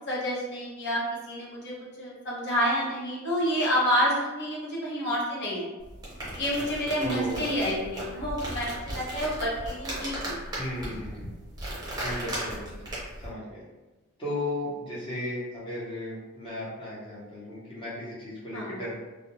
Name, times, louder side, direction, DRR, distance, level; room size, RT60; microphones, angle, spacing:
voice 1, 0.1-5.7 6.3-10.4 18.5-18.8, equal, 55° left, -5 dB, 0.8 m, -29 dB
sound 1, 5.8-13.3, right 1 dB, 20° right, 0.7 m, -36 dB
voice 2, 7.0-7.7 10.5-11.3 12.0-12.8 13.2-13.6 14.2-18.9, left 1 dB, 25° left, -8 dB, 0.9 m, -35 dB
2.4 x 2.0 x 2.8 m, 1.1 s
head